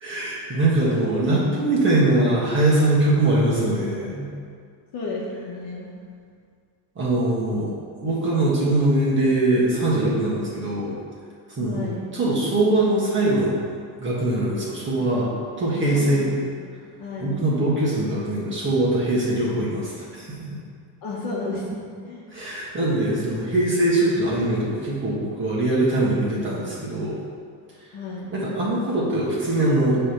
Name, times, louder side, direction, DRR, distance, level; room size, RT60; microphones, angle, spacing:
voice 1, 0.0-4.3 6.9-7.7 8.0-10.9 11.6-13.5 14.0-15.3 15.6-16.3 17.2-20.6 22.3-27.2 28.3-30.0, right 1 dB, 25° right, -7 dB, 1.6 m, -22 dB
voice 2, 4.9-5.9 11.6-12.1 15.9-16.6 17.0-17.4 21.0-22.3 27.9-28.4, left 2 dB, 55° left, -4 dB, 1.2 m, -32 dB
6.1 x 3.4 x 5.9 m, 2.1 s
cardioid pair, 130°, 43 cm